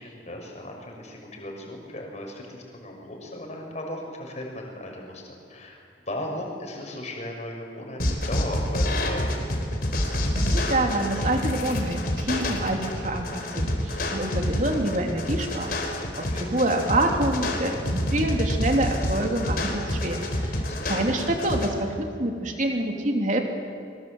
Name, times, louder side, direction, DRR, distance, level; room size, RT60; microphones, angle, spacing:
voice 1, 0.0-9.4 16.3-16.5 20.5-20.9, left 1 dB, 40° left, 1 dB, 6.2 m, -37 dB
sound 1, 8.0-21.7, left 1 dB, 55° left, 4.2 m, -27 dB
voice 2, 10.4-15.7 16.2-23.4, right 1 dB, 45° right, 2 dB, 3.2 m, -27 dB
25.5 x 24.0 x 8.1 m, 2.5 s
head